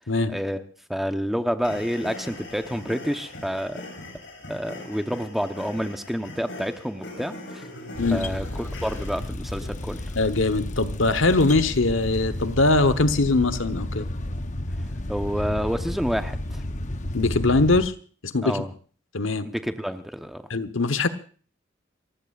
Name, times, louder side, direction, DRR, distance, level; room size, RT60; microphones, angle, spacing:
voice 1, 0.3-0.6 0.9-3.8 4.5-7.7 8.1-10.1 15.1-16.6 18.4-18.7 19.4-20.4, equal, ahead, 7 dB, 1.0 m, -29 dB
sound 1, 1.6-9.2, left 2 dB, 65° left, 5.8 m, -40 dB
sound 2, 7.9-17.9, left 1 dB, 35° left, 0.9 m, -32 dB
voice 2, 10.2-14.1 17.1-17.9 18.2-18.6 19.1-19.5 20.5-21.1, left 3 dB, 80° left, 12 dB, 1.2 m, -21 dB
29.0 x 15.5 x 2.5 m, 0.41 s
head